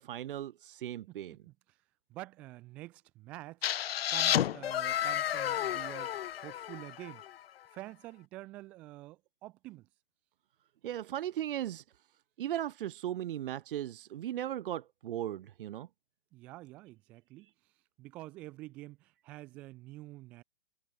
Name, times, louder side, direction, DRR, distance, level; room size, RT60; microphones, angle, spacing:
voice 1, 0.0-1.3 10.8-11.8 12.4-15.9, right 12 dB, 45° right, 0.8 m, -37 dB
voice 2, 2.1-3.7 4.1-7.2 7.7-9.9 16.3-17.5 18.0-20.4, right 18 dB, 5° right, 0.4 m, -47 dB
sound 1, 3.6-7.4, left 11 dB, 50° left, 1.5 m, -32 dB
hypercardioid pair, 145°, 38 cm